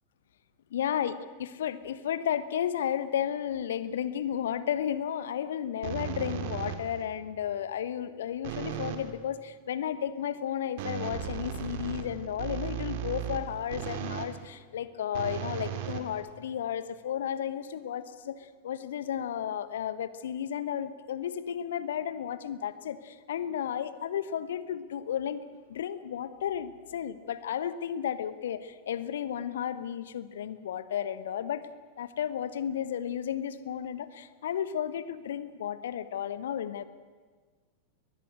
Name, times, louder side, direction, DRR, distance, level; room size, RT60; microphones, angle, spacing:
voice 1, 0.7-25.4 25.7-31.7 32.0-36.8, left 9 dB, 60° left, 14 dB, 1.1 m, -33 dB
sound 1, 5.8-7.1 8.4-9.1 10.8-14.4 15.1-16.6, right 9 dB, 50° right, 2.2 m, -36 dB
22.5 x 20.0 x 8.0 m, 1.5 s
figure-of-eight pair, 90°, 0 cm